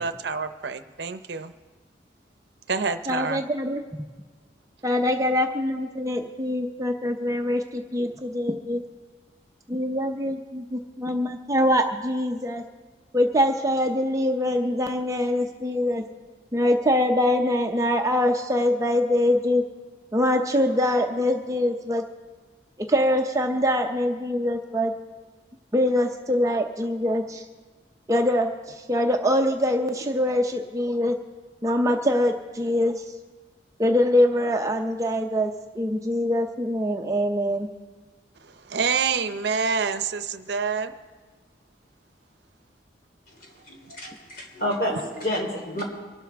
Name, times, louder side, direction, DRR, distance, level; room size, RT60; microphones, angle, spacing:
voice 1, 0.0-1.5 2.7-3.4 38.5-40.9, right 5 dB, 70° right, 10 dB, 0.6 m, -27 dB
voice 2, 3.1-3.8 4.8-8.8 9.7-12.6 13.1-16.0 16.5-19.6 20.1-22.0 22.9-24.9 25.7-27.4 28.1-31.2 31.6-33.0 33.8-37.7, left 1 dB, 20° right, 3 dB, 0.6 m, -24 dB
voice 3, 43.4-45.8, left 1 dB, 50° left, 0 dB, 3.4 m, -30 dB
24.0 x 12.0 x 3.5 m, 1.4 s
head